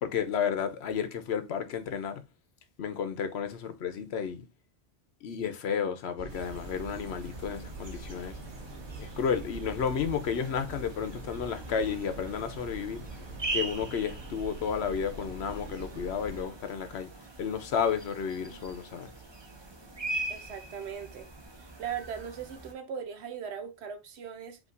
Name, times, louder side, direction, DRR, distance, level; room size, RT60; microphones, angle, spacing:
voice 1, 0.0-2.2 2.8-4.5 5.2-8.4 9.0-13.0 13.5-17.1 17.4-19.1, left 7 dB, 75° left, 1.0 m, -32 dB
sound 1, 6.2-16.4, right 2 dB, 50° right, 1.0 m, -44 dB
sound 2, 6.3-22.7, right 2 dB, 25° right, 0.8 m, -42 dB
voice 2, 20.3-21.3 21.6-24.6, right 7 dB, 75° right, 1.0 m, -39 dB
5.5 x 2.9 x 2.5 m
omnidirectional pair, 1.1 m